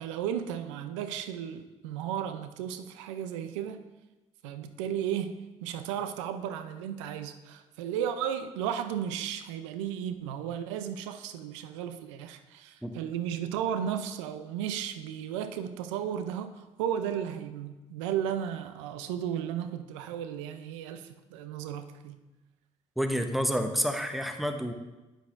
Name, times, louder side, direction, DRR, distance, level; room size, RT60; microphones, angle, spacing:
voice 1, 0.0-3.8 4.4-22.2, right 9 dB, 85° right, 9 dB, 0.5 m, -34 dB
voice 2, 23.0-24.7, equal, ahead, 6 dB, 0.9 m, -29 dB
8.5 x 7.3 x 2.5 m, 1.1 s
hypercardioid pair, 50°, 15 cm